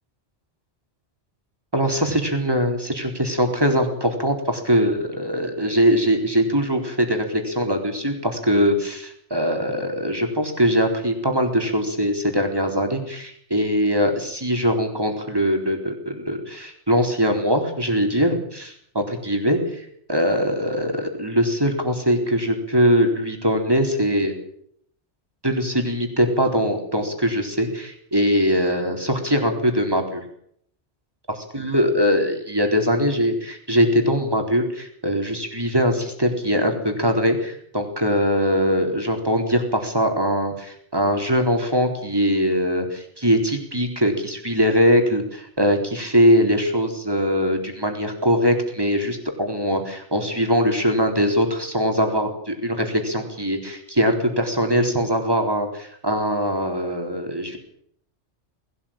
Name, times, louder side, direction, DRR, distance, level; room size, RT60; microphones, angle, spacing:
voice 1, 1.7-24.3 25.4-30.2 31.3-57.6, equal, 20° right, 4 dB, 4.2 m, -22 dB
20.5 x 17.5 x 8.9 m, 0.69 s
omnidirectional pair, 1.2 m